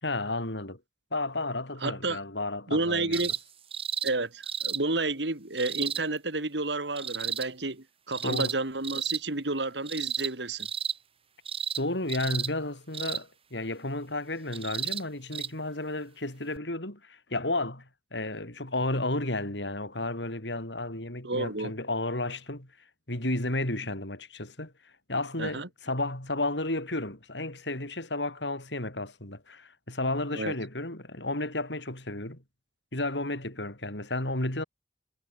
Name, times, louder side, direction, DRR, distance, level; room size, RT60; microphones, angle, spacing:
voice 1, 0.0-0.8 1.1-3.2 8.2-8.5 11.8-22.7 23.1-32.4 32.9-34.6, left 2 dB, 85° left, 6.3 m, -32 dB
voice 2, 1.8-2.2 2.7-3.3 4.0-10.7 21.2-21.7 25.4-25.7 30.3-30.5, right 2 dB, 80° right, 2.7 m, -31 dB
sound 1, 3.1-3.4 3.7-4.1 4.4-4.8 5.6-6.0 7.0-7.5 8.1-8.6 8.8-9.2 9.9-10.3 10.6-11.0 11.5-11.8 12.1-12.5 12.9-13.2 14.5-15.0 15.3-15.5 16.6-16.7, right 7 dB, 35° right, 1.8 m, -32 dB
head